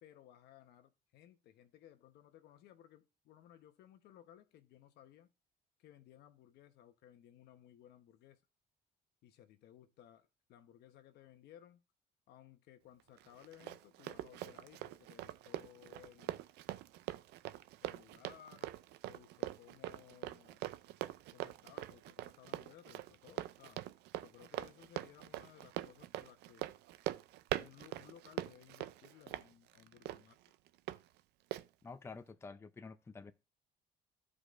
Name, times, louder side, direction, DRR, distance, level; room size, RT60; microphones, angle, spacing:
voice 1, 0.0-5.3 5.8-8.4 9.2-11.8 12.3-16.4 17.8-18.7 19.1-20.6 21.3-23.8 24.2-26.7 27.6-30.4, left 11 dB, 75° left, 0.9 m, -60 dB
Run, 13.2-31.0 31.5-31.6, right 15 dB, 80° right, 0.4 m, -43 dB
voice 2, 31.8-33.3, left 4 dB, 15° left, 0.5 m, -49 dB
14.0 x 4.9 x 2.5 m
cardioid pair, 110°, 17 cm